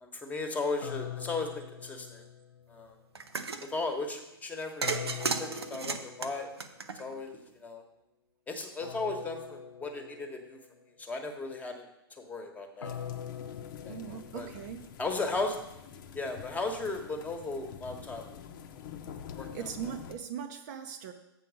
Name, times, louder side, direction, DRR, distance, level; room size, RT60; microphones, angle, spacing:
voice 1, 0.0-2.2 2.7-3.0 3.7-5.1 5.4-6.5 7.0-7.8 8.5-10.6 11.0-11.9 12.2-13.0 13.8-14.5 15.0-15.6 16.1-18.2 19.4-19.7, left 3 dB, 10° left, 4 dB, 1.2 m, -36 dB
sound 1, 0.8-2.9 4.8-6.7 8.8-10.7 12.8-15.0, left 8 dB, 75° left, 0.4 m, -43 dB
sound 2, 3.2-3.7 4.8-7.3, right 4 dB, 80° right, 0.7 m, -34 dB
sound 3, 12.8-20.1, left 8 dB, 50° left, 0.8 m, -47 dB
voice 2, 13.9-14.8 19.5-21.1, right 8 dB, 50° right, 6 dB, 0.7 m, -39 dB
7.7 x 4.7 x 6.3 m, 0.90 s
figure-of-eight pair, 105°, 13 cm